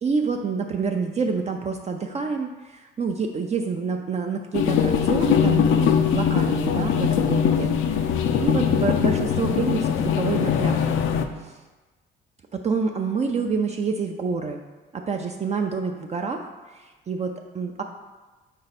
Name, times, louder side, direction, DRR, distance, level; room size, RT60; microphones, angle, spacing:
voice 1, 0.0-8.1 8.4-11.0 11.4-11.6 12.5-14.6 14.9-17.8, right 5 dB, 35° right, 3 dB, 0.5 m, -28 dB
sound 1, 4.5-11.3, left 8 dB, 85° left, 0.5 m, -21 dB
5.4 x 4.4 x 4.1 m, 1.2 s
cardioid pair, 90°, 20 cm